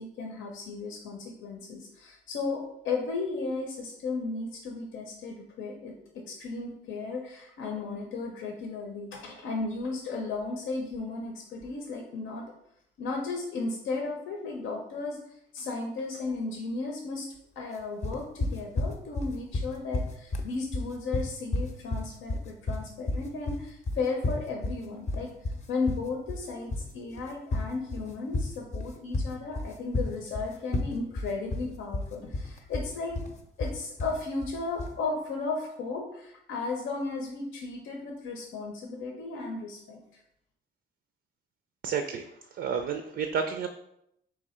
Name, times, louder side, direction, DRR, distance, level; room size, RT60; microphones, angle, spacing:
voice 1, 0.0-12.5 13.0-17.3 17.6-33.2 33.6-40.0, left 3 dB, 80° left, 1 dB, 0.7 m, -35 dB
sound 1, 18.0-35.0, left 2 dB, 35° left, 0.6 m, -32 dB
voice 2, 41.8-42.3 42.5-43.7, right 6 dB, 60° right, 7 dB, 0.4 m, -30 dB
3.6 x 2.8 x 4.2 m, 0.76 s
cardioid pair, 90°, 20 cm